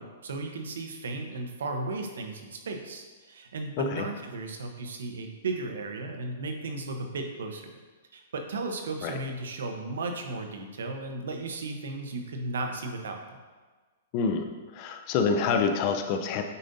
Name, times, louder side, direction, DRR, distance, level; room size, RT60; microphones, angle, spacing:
voice 1, 0.0-7.7 8.1-13.4, right 3 dB, 85° right, 4 dB, 1.0 m, -35 dB
voice 2, 14.1-16.4, left 5 dB, 35° left, 5 dB, 0.6 m, -27 dB
8.2 x 5.2 x 2.7 m, 1.4 s
hypercardioid pair, 155°, 0 cm